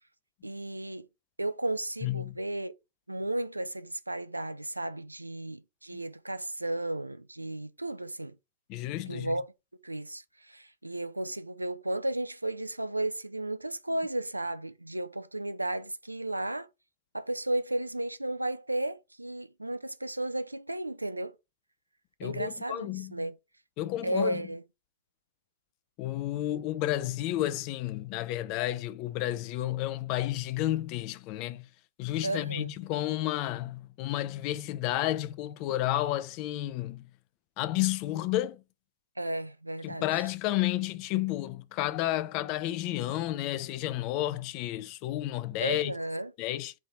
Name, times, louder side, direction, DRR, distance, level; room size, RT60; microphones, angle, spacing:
voice 1, 0.4-1.1 1.4-2.7 3.1-8.4 9.0-9.5 9.8-16.7 17.1-21.3 22.2-23.3 24.0-24.6 32.2-32.7 39.2-40.2 45.6-46.3, right 1 dB, 85° right, 0.4 m, -34 dB
voice 2, 2.0-2.4 8.7-9.3 22.2-23.2 23.8-24.4 26.0-31.7 32.0-37.0 37.6-38.6 39.8-45.9 46.4-46.7, left 14 dB, 45° left, 0.5 m, -31 dB
4.2 x 2.8 x 4.0 m
figure-of-eight pair, 90°, 0 cm